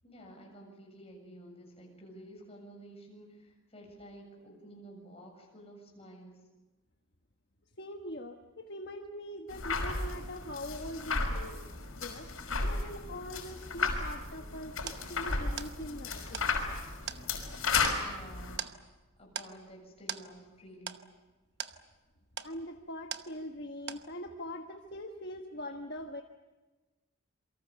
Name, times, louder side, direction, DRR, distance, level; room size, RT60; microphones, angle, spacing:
voice 1, 0.0-6.3 18.0-18.6 19.2-21.0, right 1 dB, 30° left, 1 dB, 7.4 m, -51 dB
voice 2, 7.8-11.6 11.9-12.3 12.6-16.4 22.4-26.2, left 1 dB, 50° left, 4 dB, 1.3 m, -42 dB
sound 1, 9.5-18.6, left 4 dB, 80° left, 5.5 m, -34 dB
sound 2, 14.9-23.6 23.9-24.5, right 8 dB, 55° right, 1.1 m, -44 dB
28.0 x 24.0 x 7.0 m, 1.2 s
head